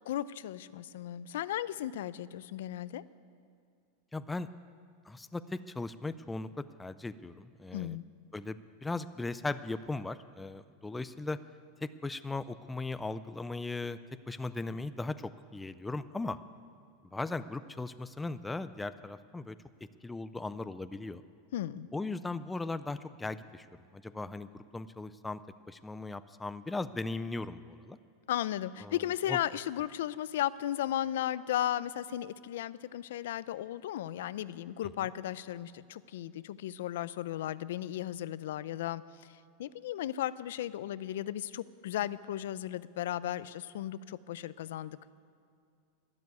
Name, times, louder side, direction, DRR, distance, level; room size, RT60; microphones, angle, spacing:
voice 1, 0.1-3.0 7.7-8.0 21.5-21.9 28.3-39.0 39.6-45.2, left 12 dB, 75° left, 17 dB, 0.5 m, -35 dB
voice 2, 4.1-4.5 5.1-6.5 6.8-8.0 8.3-11.4 11.8-14.0 14.3-16.4 17.1-19.6 20.0-21.2 21.9-23.7 23.9-25.4 25.7-28.0 28.8-29.0 29.3-29.4, left 3 dB, 5° left, 13 dB, 0.3 m, -38 dB
12.5 x 12.0 x 9.4 m, 2.4 s
supercardioid pair, 170°, 0 cm